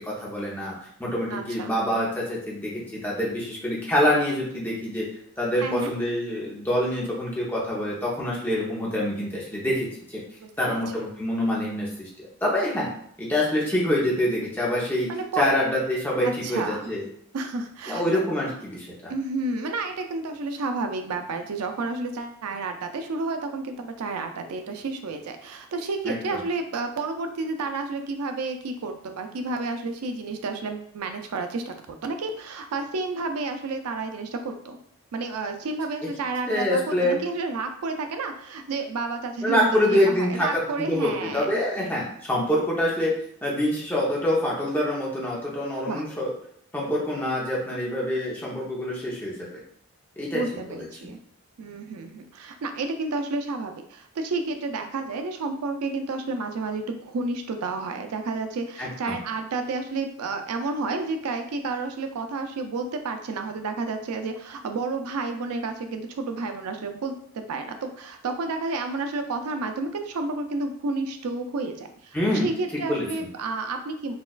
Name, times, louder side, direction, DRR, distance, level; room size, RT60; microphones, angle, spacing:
voice 1, 0.0-5.1 5.4-9.9 10.6-12.9 13.2-15.1 15.4-17.0 17.9-19.1 26.0-26.4 36.5-37.2 39.4-43.1 43.4-46.3 46.7-49.6 50.2-50.4 50.7-50.9 58.8-59.2 72.1-72.5 72.8-73.1, left 1 dB, 10° left, -5 dB, 0.7 m, -26 dB
voice 2, 1.3-1.7 5.6-5.9 10.4-10.8 15.1-15.5 16.2-16.9 17.3-18.0 19.1-34.8 35.1-41.6 45.9-46.0 50.3-51.2 51.6-72.1 72.4-74.1, right 3 dB, 90° right, 6 dB, 0.4 m, -31 dB
4.1 x 2.4 x 2.3 m, 0.67 s
head